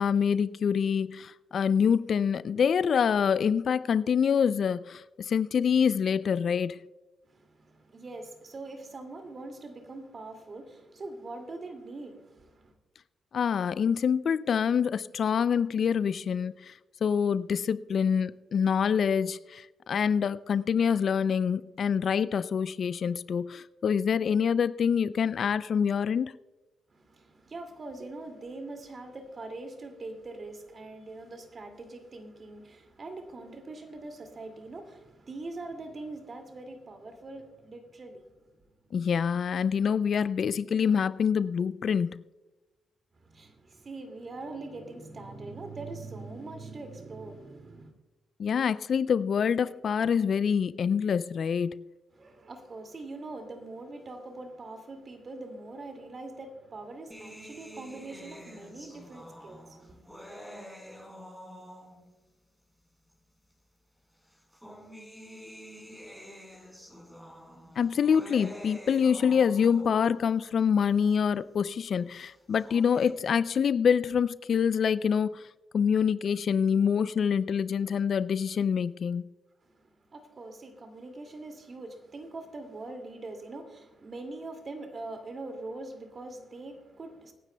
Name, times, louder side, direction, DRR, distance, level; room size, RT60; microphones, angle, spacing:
voice 1, 0.0-6.8 13.3-16.7 17.0-26.3 38.9-42.2 48.4-51.9 67.8-75.5 75.7-79.2, left 7 dB, 60° left, 0.4 m, -26 dB
voice 2, 7.3-12.7 26.9-38.3 39.5-39.6 43.2-47.9 52.1-60.2 79.6-87.3, right 2 dB, 45° right, 2.3 m, -43 dB
sound 1, 57.1-62.2 63.1-63.2 64.3-70.2 72.3-73.1, equal, 5° right, 4.4 m, -47 dB
25.0 x 9.8 x 2.2 m
hypercardioid pair, 45°, 0 cm